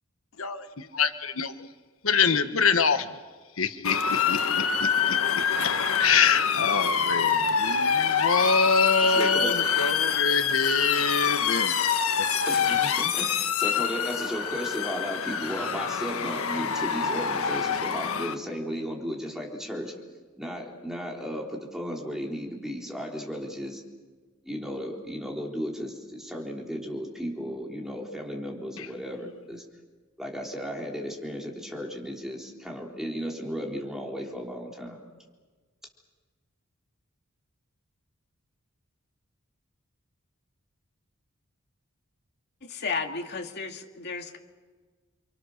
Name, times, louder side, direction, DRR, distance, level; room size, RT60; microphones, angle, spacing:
voice 1, 0.4-1.5 2.0-3.1 3.6-4.4 4.8-4.9 5.6-5.7 6.0-11.8 28.8-28.9, left 5 dB, 70° left, 10 dB, 1.3 m, -25 dB
Motor vehicle (road) / Siren, 3.8-18.3, left 7 dB, 90° left, 1.5 m, -26 dB
voice 2, 9.0-9.6 12.5-19.9 20.4-23.8 24.4-29.6 30.2-35.0, equal, ahead, -1 dB, 3.8 m, -35 dB
voice 3, 42.6-44.4, left 4 dB, 50° left, 3 dB, 2.4 m, -33 dB
30.0 x 25.0 x 6.6 m, 1.4 s
head